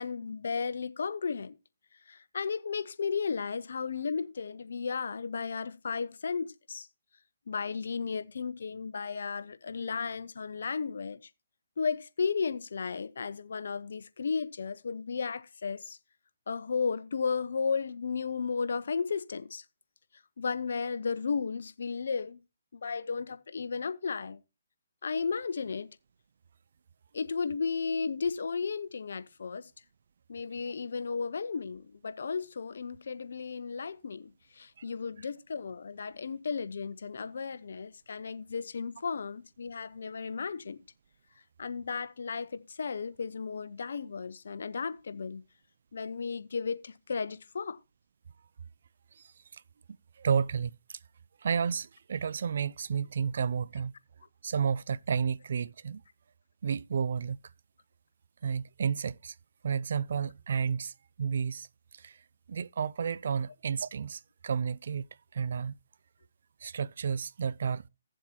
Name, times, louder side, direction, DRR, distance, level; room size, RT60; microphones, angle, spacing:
voice 1, 0.0-1.6 2.1-6.9 7.5-11.2 11.8-16.0 16.5-19.6 20.4-22.4 22.7-24.4 25.0-25.9 27.1-29.7 30.3-40.8 41.6-45.4 45.9-47.8, left 5 dB, 70° left, 0.9 m, -34 dB
voice 2, 49.1-49.6 50.2-51.0 51.4-53.9 54.4-56.0 56.6-57.4 58.4-59.4 59.6-61.7 61.9-62.2 62.5-65.0 65.3-65.8 66.6-67.9, right 6 dB, 60° right, 0.4 m, -31 dB
16.5 x 7.4 x 2.9 m
hypercardioid pair, 150°, 0 cm